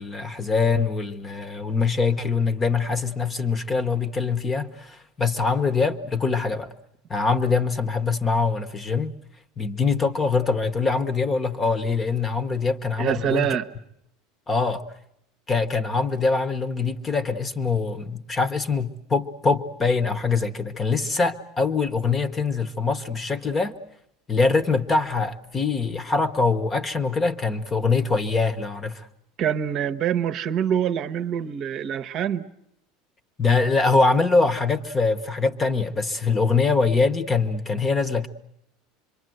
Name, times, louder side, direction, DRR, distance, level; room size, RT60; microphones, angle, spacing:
voice 1, 0.0-6.7 7.1-9.1 9.6-13.6 14.5-14.8 15.5-23.7 24.3-29.1 33.4-38.3, left 4 dB, 20° left, 1.0 m, -23 dB
voice 2, 13.0-13.7 29.4-32.5, right 9 dB, 45° right, 0.9 m, -25 dB
26.0 x 23.5 x 7.9 m
supercardioid pair, 135°, 0 cm